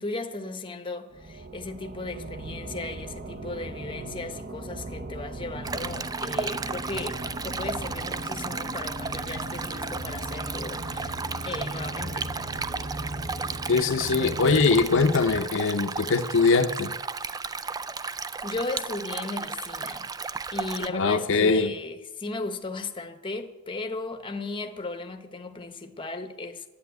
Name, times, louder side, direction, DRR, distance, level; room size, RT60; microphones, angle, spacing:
voice 1, 0.0-11.1 11.4-12.3 18.4-20.1 20.5-26.7, left 3 dB, 25° left, 0.8 m, -36 dB
sound 1, 1.1-15.4, right 1 dB, 35° right, 0.8 m, -37 dB
Stream, 5.6-20.9, right 4 dB, 15° right, 0.3 m, -34 dB
voice 2, 13.7-16.9 20.9-21.7, left 4 dB, 60° left, 0.7 m, -22 dB
10.5 x 8.5 x 9.4 m
head